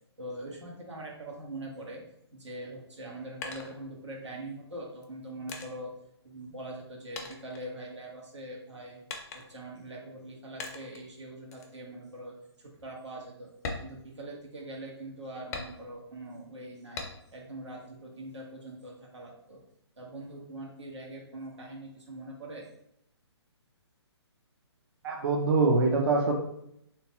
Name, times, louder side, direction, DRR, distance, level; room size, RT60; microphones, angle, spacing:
voice 1, 0.2-2.0 2.3-5.9 6.2-9.0 9.3-13.5 13.8-17.0 17.3-19.6 20.0-22.7, right 1 dB, 85° right, -2 dB, 1.3 m, -43 dB
sound 1, 2.9-4.4 5.0-6.9 7.2-8.3 9.1-9.7 10.6-11.1 11.5-11.8 12.2-12.3 12.7-12.9 13.5-14.7 15.5-16.2 17.0-17.5 17.9-18.7, left 4 dB, 35° left, 0.6 m, -42 dB
voice 2, 25.0-26.3, right 3 dB, 55° right, -1 dB, 0.6 m, -24 dB
3.5 x 2.9 x 2.9 m, 0.75 s
hypercardioid pair, 140°, 14 cm